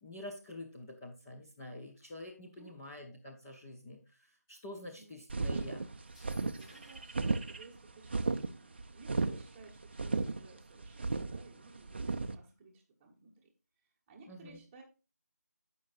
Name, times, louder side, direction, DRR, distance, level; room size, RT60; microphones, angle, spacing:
voice 1, 0.0-5.9 14.3-14.6, left 1 dB, 10° left, -3 dB, 0.5 m, -47 dB
voice 2, 4.8-5.2 6.4-13.5 14.1-14.8, right 3 dB, 10° right, -2 dB, 1.1 m, -57 dB
sound 1, 5.3-12.4, right 3 dB, 40° right, 0.5 m, -35 dB
sound 2, 6.0-7.2, left 1 dB, 25° left, 2.6 m, -60 dB
15.5 x 5.4 x 2.5 m, 0.32 s
figure-of-eight pair, 160°, 9 cm